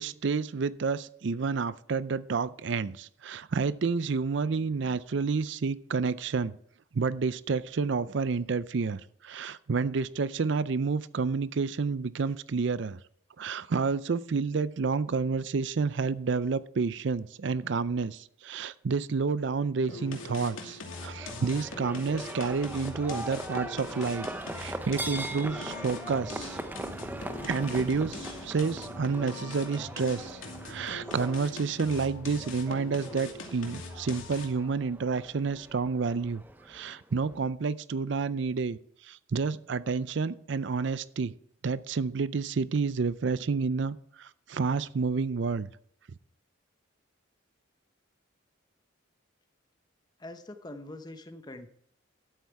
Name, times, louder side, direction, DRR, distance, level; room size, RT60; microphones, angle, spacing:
voice 1, 0.0-6.5 6.9-13.0 13.4-24.3 24.5-26.6 27.5-41.3 41.6-45.7, right 4 dB, 60° right, 16 dB, 0.5 m, -30 dB
sound 1, 19.9-34.7, left 3 dB, 85° left, 2.5 m, -42 dB
Livestock farm animals working animals, 20.9-37.4, right 1 dB, 10° right, 0.6 m, -41 dB
voice 2, 50.2-51.7, left 1 dB, 20° left, 8 dB, 0.8 m, -43 dB
12.5 x 8.3 x 4.6 m, 0.64 s
head